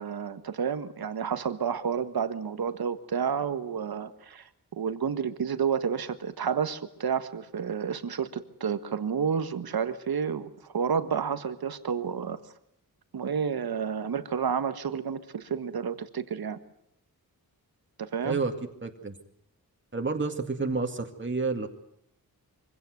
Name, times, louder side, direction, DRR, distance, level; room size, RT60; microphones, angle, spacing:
voice 1, 0.0-4.5 4.7-12.4 13.1-16.6 18.0-18.4, right 7 dB, 75° right, 11 dB, 1.6 m, -30 dB
voice 2, 18.2-18.5 18.8-19.2 19.9-21.7, right 4 dB, 30° right, 4 dB, 2.3 m, -29 dB
24.0 x 17.0 x 9.4 m, 0.73 s
wide cardioid pair, 85°, 37 cm